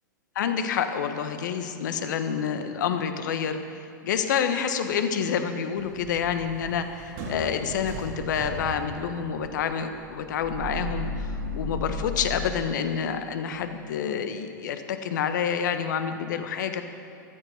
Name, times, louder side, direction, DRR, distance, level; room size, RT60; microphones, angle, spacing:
voice 1, 0.3-3.6 4.0-16.8, left 7 dB, 65° left, 8 dB, 1.4 m, -28 dB
sound 1, 5.8-12.4, left 1 dB, 55° right, 3.0 m, -36 dB
15.0 x 13.0 x 6.6 m, 2.5 s
hypercardioid pair, 100°, 11 cm